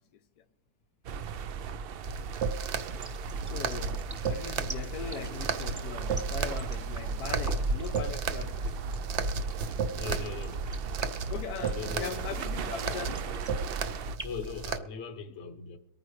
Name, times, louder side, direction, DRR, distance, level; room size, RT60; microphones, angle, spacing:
sound 1, 1.0-14.2, right 6 dB, 90° right, 0.5 m, -37 dB
sound 2, 2.0-14.8, right 4 dB, 60° right, 0.8 m, -34 dB
sound 3, 2.7-14.5, right 1 dB, 20° right, 0.6 m, -44 dB
voice 1, 3.4-4.0 4.3-8.7 11.3-13.5 15.3-15.4, left 8 dB, 85° left, 1.2 m, -40 dB
voice 2, 10.0-10.6 11.7-12.2 14.2-15.8, left 6 dB, 55° left, 1.3 m, -39 dB
23.0 x 9.3 x 3.2 m
omnidirectional pair, 1.6 m